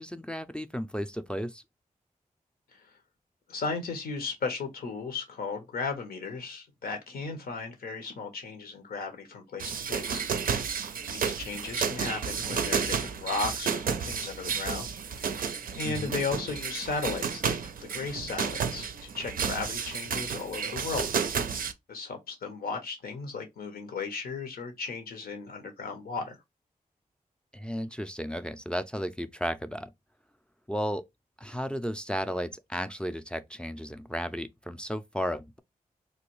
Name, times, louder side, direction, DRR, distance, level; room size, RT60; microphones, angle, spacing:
voice 1, 0.0-1.6 15.8-16.1 27.5-29.9 30.7-31.0 31.4-35.6, equal, 5° left, 0.3 m, -34 dB
voice 2, 3.5-10.7 11.1-14.9 15.2-15.5 15.8-17.6 17.9-21.1 21.9-26.4, left 4 dB, 90° left, 0.8 m, -35 dB
sound 1, 9.6-21.7, right 6 dB, 70° right, 0.4 m, -32 dB
3.1 x 2.2 x 3.0 m
cardioid pair, 45°, 15 cm